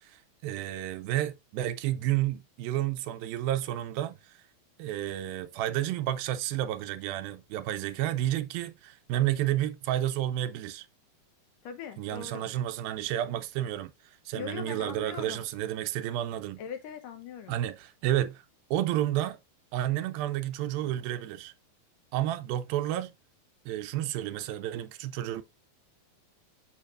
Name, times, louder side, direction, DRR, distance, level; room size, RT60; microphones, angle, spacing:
voice 1, 0.0-4.2 4.8-10.9 12.0-13.9 14.3-16.6 17.5-18.4 18.7-19.4 19.7-21.5 22.1-23.1 23.7-25.4, right 13 dB, 85° right, 2.5 m, -31 dB
voice 2, 11.6-12.5 14.4-15.4 16.6-17.6, left 7 dB, 70° left, 2.6 m, -41 dB
7.0 x 6.5 x 2.4 m
omnidirectional pair, 4.2 m